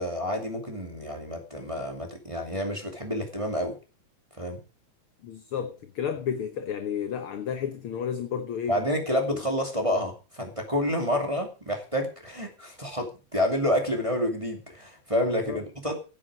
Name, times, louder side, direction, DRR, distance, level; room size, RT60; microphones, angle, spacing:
voice 1, 0.0-3.7 4.4-4.6 8.7-16.0, equal, 10° right, 2.2 m, -29 dB
voice 2, 5.2-8.8 15.5-15.6, left 8 dB, 60° left, 1.6 m, -32 dB
16.5 x 8.7 x 4.9 m
omnidirectional pair, 3.6 m